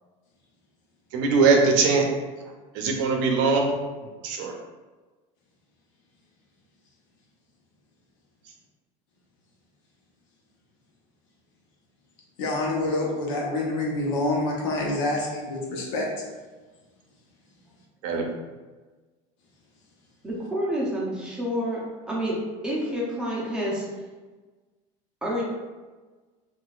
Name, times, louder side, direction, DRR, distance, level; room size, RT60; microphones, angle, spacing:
voice 1, 1.1-2.0 2.7-3.7 4.0-4.5 18.0-18.2, right 4 dB, 65° right, 2 dB, 0.6 m, -21 dB
voice 2, 12.4-16.1, left 2 dB, 75° left, -2 dB, 0.9 m, -27 dB
voice 3, 20.2-21.8 22.1-22.4 22.6-23.9 25.2-25.4, equal, 5° right, -6 dB, 0.7 m, -28 dB
3.7 x 2.5 x 2.4 m, 1.3 s
cardioid pair, 160°, 16 cm